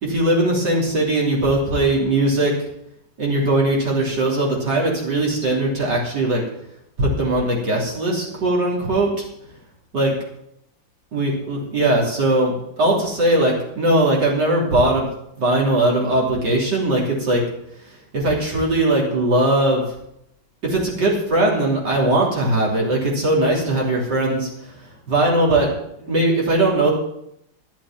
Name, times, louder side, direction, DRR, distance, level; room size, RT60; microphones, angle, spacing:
voice 1, 0.0-2.5 3.2-6.4 7.0-9.1 9.9-10.2 11.1-15.1 15.3-17.4 18.1-19.8 20.6-24.7 25.1-25.7 26.0-26.9, right 1 dB, 60° right, -3 dB, 3.9 m, -19 dB
12.5 x 7.6 x 7.5 m, 0.77 s
omnidirectional pair, 2.1 m